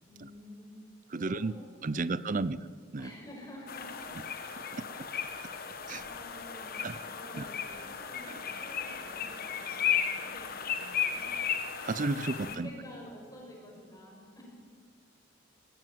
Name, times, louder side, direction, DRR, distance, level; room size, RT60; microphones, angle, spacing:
voice 1, 0.1-0.7 1.1-2.5 3.0-4.1 4.8-4.9 5.6-6.8 7.1-11.3 12.2-14.4, left 1 dB, 20° left, -1 dB, 6.0 m, -50 dB
voice 2, 1.1-1.5 1.8-2.6 2.9-3.1 5.9-6.0 6.8-7.0 7.4-7.5 8.3-8.4 11.8-12.7, right 3 dB, 40° right, 17 dB, 0.5 m, -32 dB
sound 1, 3.7-12.6, left 8 dB, 45° left, 1.4 m, -35 dB
20.5 x 15.5 x 9.2 m, 2.1 s
head